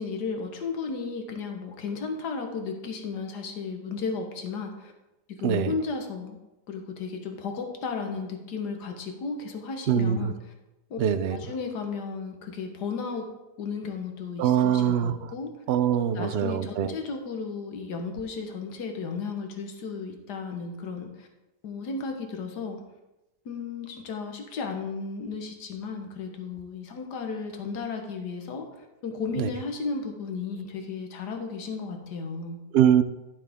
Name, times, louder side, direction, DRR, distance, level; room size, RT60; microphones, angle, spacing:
voice 1, 0.0-4.9 5.4-6.4 6.7-10.3 10.9-11.0 11.3-13.2 13.6-15.5 16.1-21.3 21.6-22.8 23.5-32.6, left 4 dB, 80° left, 3 dB, 1.8 m, -34 dB
voice 2, 9.9-10.3 11.0-11.4 14.4-15.3 15.7-16.9 29.4-29.5 32.7-33.0, right 9 dB, 75° right, 11 dB, 0.5 m, -23 dB
12.0 x 7.4 x 3.6 m, 0.98 s
omnidirectional pair, 1.8 m